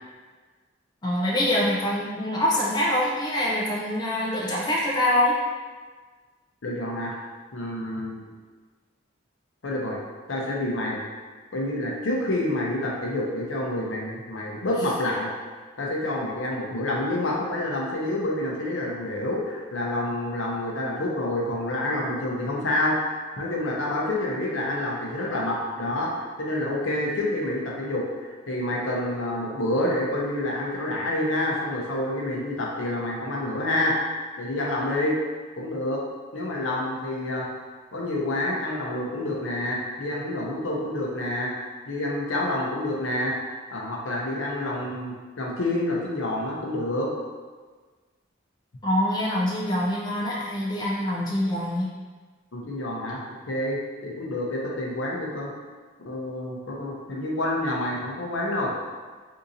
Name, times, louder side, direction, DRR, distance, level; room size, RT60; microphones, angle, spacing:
voice 1, 1.0-5.4 48.8-51.9, left 1 dB, 20° left, -5 dB, 0.4 m, -25 dB
voice 2, 6.6-7.2 7.5-8.2 9.6-10.0 10.3-11.0 11.5-15.3 15.8-34.0 34.4-35.2 35.6-36.0 36.3-37.5 37.9-41.5 41.9-43.3 43.7-47.1 52.5-53.2 53.5-55.5 56.1-58.7, left 1 dB, 80° left, -2 dB, 0.7 m, -28 dB
3.8 x 2.7 x 2.7 m, 1.4 s
head